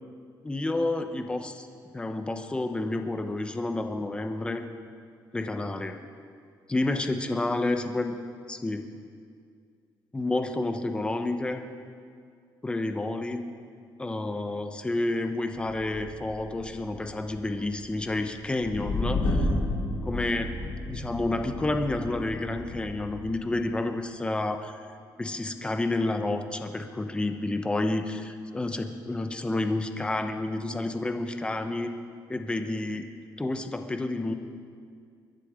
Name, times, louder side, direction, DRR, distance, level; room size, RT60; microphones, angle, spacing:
voice 1, 0.4-1.7 1.9-4.6 5.3-6.0 6.7-8.1 8.5-8.9 10.1-11.6 12.6-13.4 14.0-19.5 20.0-20.5 20.9-24.8 25.2-31.9 32.3-33.1 33.4-34.3, left 2 dB, 15° left, 7 dB, 0.9 m, -30 dB
sound 1, 15.6-23.4, left 1 dB, 60° left, 4.3 m, -32 dB
23.0 x 10.5 x 5.1 m, 2.2 s
cardioid pair, 135°, 8 cm